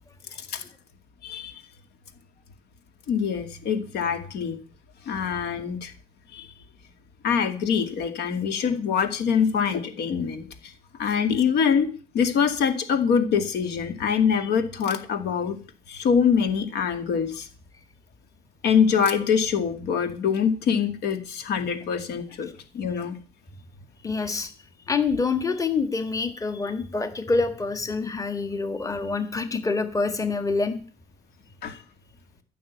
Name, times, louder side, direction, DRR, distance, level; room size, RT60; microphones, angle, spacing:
voice 1, 1.2-1.6 3.1-4.6 5.1-5.9 6.3-6.5 7.2-10.7 11.0-11.9 12.1-15.6 15.9-17.5 18.6-22.5 22.7-23.2 31.6-31.8, left 7 dB, 75° left, 8 dB, 2.3 m, -24 dB
voice 2, 24.0-24.5 24.9-30.8, left 4 dB, 20° left, 9 dB, 1.6 m, -26 dB
15.0 x 6.4 x 8.3 m, 0.39 s
cardioid pair, 110°, 17 cm